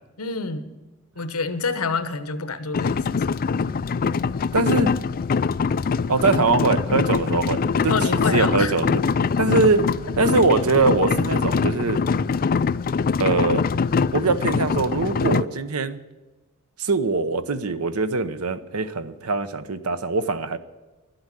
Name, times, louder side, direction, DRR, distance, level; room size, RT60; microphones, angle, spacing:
voice 1, 0.2-0.7 1.2-3.3 7.9-8.7, left 4 dB, 75° left, 11 dB, 1.2 m, -27 dB
sound 1, 2.7-15.4, left 5 dB, 40° left, 0.4 m, -23 dB
voice 2, 4.5-4.9 6.1-7.9 8.3-9.0 9.4-9.8 10.2-12.0 13.2-13.6 14.1-16.0 16.8-20.6, right 3 dB, 85° right, 12 dB, 0.9 m, -22 dB
12.0 x 8.0 x 9.8 m, 1.2 s
head